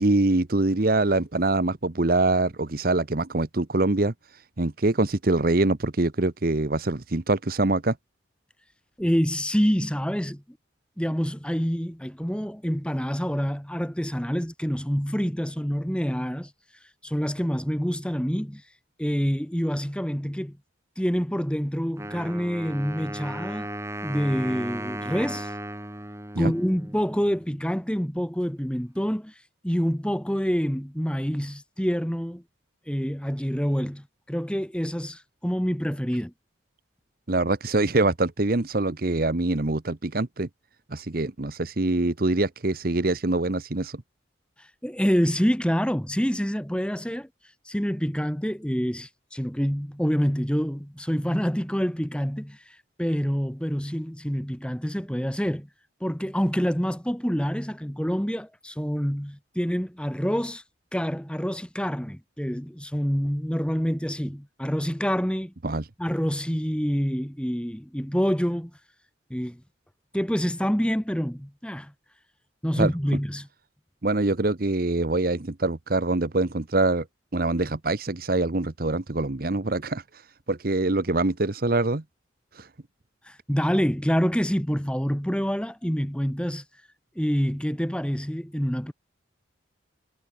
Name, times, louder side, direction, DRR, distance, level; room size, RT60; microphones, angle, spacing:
voice 1, 0.0-4.1 4.6-7.9 26.3-26.5 37.3-40.5 40.9-44.0 65.6-65.8 72.8-72.9 74.0-77.0 77.3-80.0 80.5-82.0 82.6-82.7, right 2 dB, 50° right, 1.0 m, -24 dB
voice 2, 9.0-10.4 11.0-16.5 17.0-18.6 19.0-20.6 21.0-23.7 24.0-25.5 26.4-32.4 32.9-36.3 44.6-47.3 47.6-55.7 56.0-60.6 60.9-65.5 66.0-68.7 69.3-69.6 70.1-71.9 72.6-73.5 83.2-86.6 87.2-88.9, equal, 5° left, 1.9 m, -27 dB
Wind instrument woodwind instrument, 22.0-27.6, right 1 dB, 15° right, 5.5 m, -36 dB
head